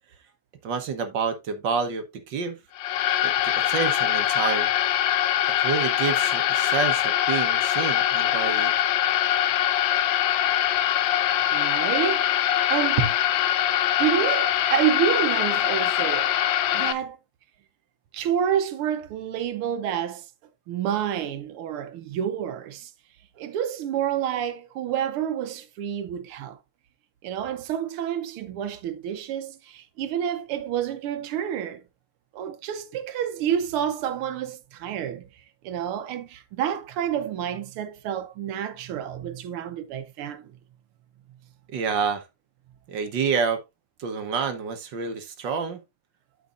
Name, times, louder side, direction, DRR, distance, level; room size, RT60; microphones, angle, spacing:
voice 1, 0.6-2.6 3.2-4.7 5.6-8.7 13.0-13.1 41.7-42.2 42.9-43.6 44.0-45.8, right 5 dB, 65° right, 1.6 m, -28 dB
sound 1, 2.8-16.9, left 12 dB, 75° left, 1.2 m, -23 dB
voice 2, 11.5-13.0 14.0-16.4 16.7-17.2 18.1-20.3 20.7-22.9 23.4-26.6 27.2-31.8 32.3-35.3 35.6-40.5, right 9 dB, 90° right, 1.7 m, -29 dB
12.5 x 5.2 x 2.4 m
omnidirectional pair, 2.3 m